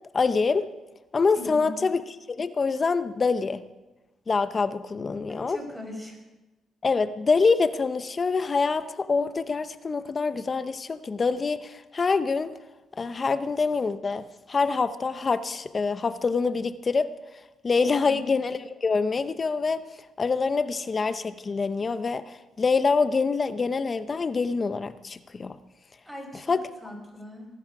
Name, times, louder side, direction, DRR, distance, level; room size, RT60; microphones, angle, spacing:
voice 1, 0.1-0.7 1.1-3.6 4.3-5.6 6.8-12.6 13.0-17.1 17.6-19.8 20.2-25.6 26.5-26.6, left 4 dB, 35° left, 13 dB, 0.8 m, -25 dB
voice 2, 1.4-1.7 5.3-6.2 18.0-18.2 26.1-26.6 26.8-27.5, left 1 dB, 10° right, 1 dB, 5.5 m, -40 dB
19.5 x 11.5 x 4.9 m, 1.1 s
cardioid pair, 90°, 0 cm